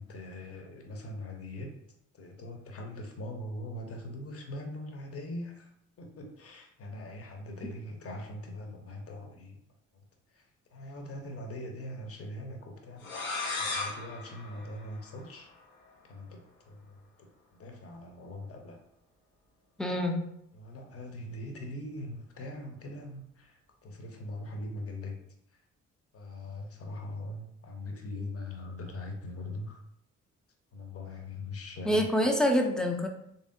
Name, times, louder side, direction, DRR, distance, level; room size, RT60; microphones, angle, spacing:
voice 1, 0.0-1.8 2.1-5.7 6.0-9.6 10.3-13.1 13.6-15.5 16.0-18.8 20.5-25.2 25.5-25.6 26.1-29.8 30.7-32.0, left 1 dB, 35° left, 4 dB, 0.8 m, -41 dB
sound 1, 13.0-15.6, left 3 dB, 85° left, 0.7 m, -37 dB
voice 2, 19.8-20.2 31.8-33.1, equal, ahead, 3 dB, 0.5 m, -26 dB
3.3 x 2.7 x 2.6 m, 0.75 s
figure-of-eight pair, 40°, 40 cm